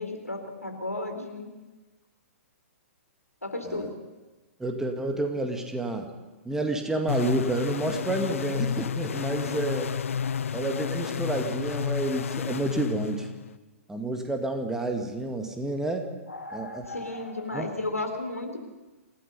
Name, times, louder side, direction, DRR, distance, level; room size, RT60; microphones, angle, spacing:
voice 1, 0.0-1.5 3.4-3.9 16.3-18.6, left 2 dB, 90° left, 4 dB, 3.9 m, -34 dB
voice 2, 4.6-6.1 6.5-9.9 10.5-13.3 13.9-16.1 16.5-16.8 17.5-17.7, right 2 dB, 5° right, 4 dB, 2.1 m, -29 dB
sound 1, 7.1-13.6, left 7 dB, 65° left, 0.7 m, -31 dB
27.5 x 17.5 x 5.5 m, 1.2 s
figure-of-eight pair, 115°, 8 cm